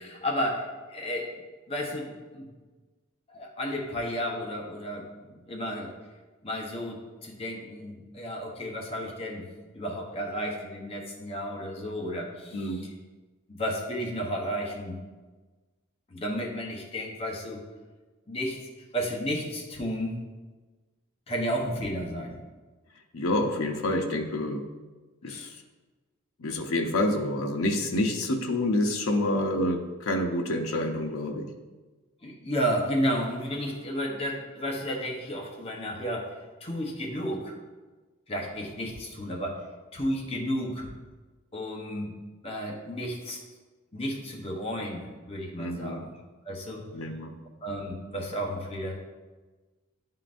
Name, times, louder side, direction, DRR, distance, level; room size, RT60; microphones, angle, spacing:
voice 1, 0.0-1.3 1.7-2.5 3.3-5.9 6.4-9.4 9.7-12.9 13.5-15.0 16.1-17.6 18.3-18.6 18.9-20.1 21.3-22.4 25.3-25.5 32.2-36.3 36.6-37.5 38.3-39.6 39.9-40.9 41.5-42.1 42.4-43.4 43.9-46.1 46.4-46.9 47.6-48.9, equal, 25° left, 0 dB, 0.8 m, -32 dB
voice 2, 12.5-12.9 23.1-24.6 25.2-25.6 26.4-31.4 45.6-46.1 46.9-47.3, left 1 dB, 80° left, 2 dB, 0.6 m, -28 dB
10.5 x 3.8 x 2.5 m, 1.3 s
head